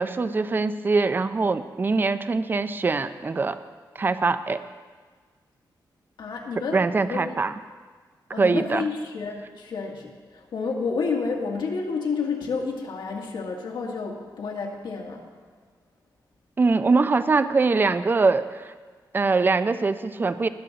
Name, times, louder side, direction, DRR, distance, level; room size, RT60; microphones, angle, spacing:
voice 1, 0.0-3.6 4.0-4.6 6.7-7.5 8.4-8.9 16.6-18.7 19.1-20.5, right 4 dB, 25° right, 12 dB, 0.4 m, -23 dB
voice 2, 6.2-6.8 7.1-7.4 8.3-15.3, left 4 dB, 80° left, -1 dB, 1.9 m, -30 dB
19.5 x 7.8 x 3.9 m, 1.5 s
wide cardioid pair, 135°, 8 cm